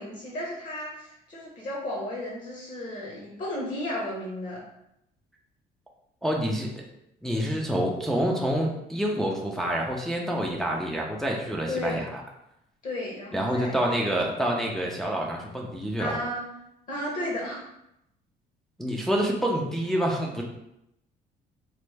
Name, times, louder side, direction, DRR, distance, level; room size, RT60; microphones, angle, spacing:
voice 1, 0.0-4.6 11.7-12.0 12.8-13.8 14.1-14.5 16.0-16.5 16.9-17.6, left 1 dB, 50° left, -4 dB, 0.9 m, -33 dB
voice 2, 6.2-6.8 7.2-12.2 13.3-16.2 18.8-20.4, equal, 5° left, -2 dB, 0.4 m, -27 dB
3.1 x 2.0 x 3.3 m, 0.83 s
cardioid pair, 110°, 17 cm